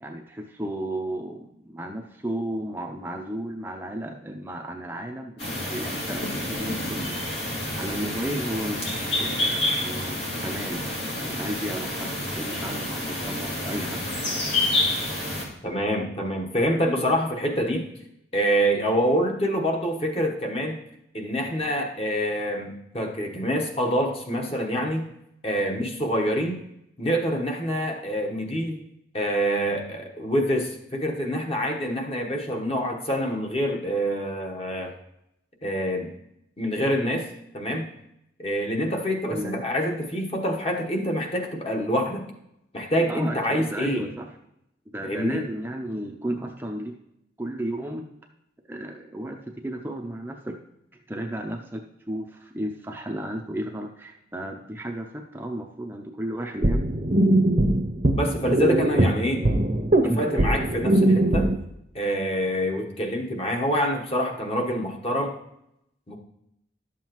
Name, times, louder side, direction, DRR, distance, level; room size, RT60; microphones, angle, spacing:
voice 1, 0.0-7.2 7.8-10.8 11.2-14.0 39.3-39.6 43.1-44.3 44.9-46.9 47.4-48.1 48.7-50.6 50.9-56.8 60.0-60.3, right 1 dB, 10° right, 2 dB, 0.5 m, -33 dB
sound 1, 5.4-15.4, left 1 dB, 80° left, 2.3 m, -28 dB
voice 2, 15.6-17.9 18.3-20.8 21.1-25.1 25.4-26.6 27.0-28.8 29.1-34.9 35.6-36.1 36.6-37.3 37.5-37.9 38.4-42.3 42.7-44.0 45.0-45.4 58.1-59.8 60.1-61.5 61.9-65.4 66.1-66.2, equal, 35° left, 1 dB, 1.1 m, -26 dB
sound 2, 56.6-61.5, right 1 dB, 45° right, 0.7 m, -21 dB
11.5 x 7.3 x 3.0 m, 0.81 s
head